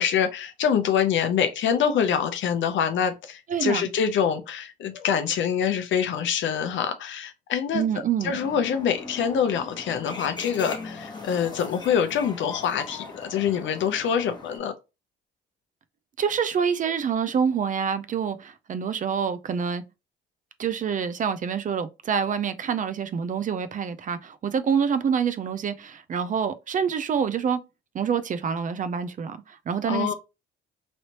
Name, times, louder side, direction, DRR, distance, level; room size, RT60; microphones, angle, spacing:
voice 1, 0.0-7.8 8.2-14.7 29.9-30.1, left 8 dB, 70° left, 0.7 m, -25 dB
voice 2, 3.5-3.9 7.7-8.3 16.2-19.8 20.6-27.6 27.9-30.1, right 7 dB, 40° right, 0.4 m, -26 dB
sound 1, 8.2-14.6, left 3 dB, 20° left, 1.1 m, -40 dB
3.2 x 2.9 x 2.8 m
cardioid pair, 90°, 20 cm